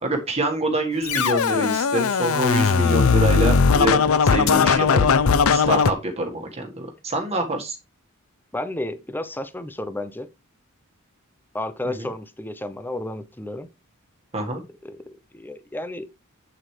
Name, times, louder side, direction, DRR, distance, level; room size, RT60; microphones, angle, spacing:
voice 1, 0.0-5.1 5.5-7.8 11.8-12.1 14.3-14.6, right 2 dB, 30° right, 1.7 m, -26 dB
Scratching (performance technique), 1.1-5.9, left 5 dB, 75° left, 0.6 m, -18 dB
voice 2, 8.5-10.3 11.5-13.7 14.8-15.0 15.3-16.1, left 1 dB, 10° left, 0.7 m, -32 dB
8.1 x 7.8 x 3.3 m
head